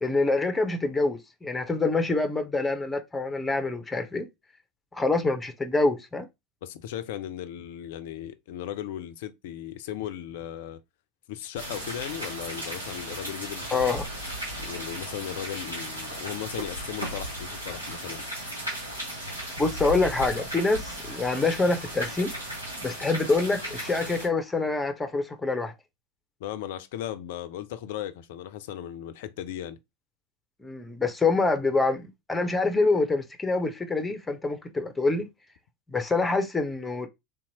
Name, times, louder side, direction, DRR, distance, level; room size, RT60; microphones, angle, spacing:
voice 1, 0.0-4.3 4.9-6.3 13.7-14.0 19.6-22.3 22.8-25.7 30.6-35.3 35.9-37.1, left 3 dB, 10° left, 0.8 m, -26 dB
voice 2, 6.6-10.8 11.3-14.0 14.6-18.2 26.4-29.8, left 11 dB, 60° left, 0.4 m, -37 dB
sound 1, 11.5-24.3, right 1 dB, 90° right, 1.1 m, -36 dB
3.7 x 2.8 x 2.7 m
figure-of-eight pair, 80°, 0 cm